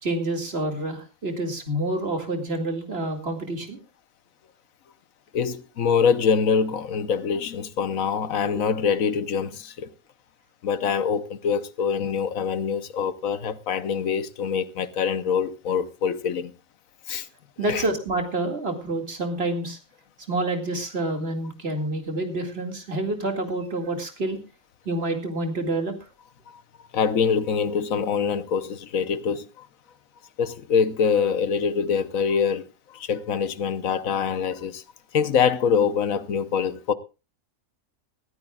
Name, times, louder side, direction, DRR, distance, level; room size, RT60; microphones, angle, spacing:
voice 1, 0.0-3.8 17.6-19.8 20.3-24.4 24.9-25.9, right 2 dB, 50° right, 2.4 m, -28 dB
voice 2, 5.3-9.9 10.6-16.5 17.1-17.3 17.7-17.8 26.5-26.6 26.9-29.7 30.4-34.8 35.1-36.9, left 6 dB, 80° left, 1.3 m, -24 dB
20.5 x 14.5 x 2.4 m
omnidirectional pair, 1.4 m